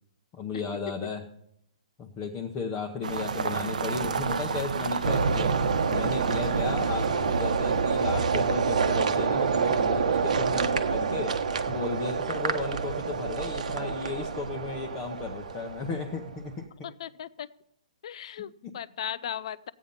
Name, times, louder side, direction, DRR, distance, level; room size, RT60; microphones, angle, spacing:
voice 1, 0.3-1.2 2.0-5.6 5.9-11.4 11.7-16.7 18.4-18.7, left 4 dB, 15° left, 0 dB, 0.9 m, -35 dB
sound 1, 3.0-9.9, right 4 dB, 90° right, 1.0 m, -33 dB
sound 2, 5.0-16.2, right 5 dB, 70° right, 1.2 m, -27 dB
Brass instrument, 12.3-16.4, right 4 dB, 30° right, 1.5 m, -49 dB
voice 2, 16.8-17.5 18.0-19.7, left 10 dB, 50° left, 17 dB, 0.5 m, -37 dB
15.5 x 8.9 x 5.5 m, 0.74 s
hypercardioid pair, 170°, 4 cm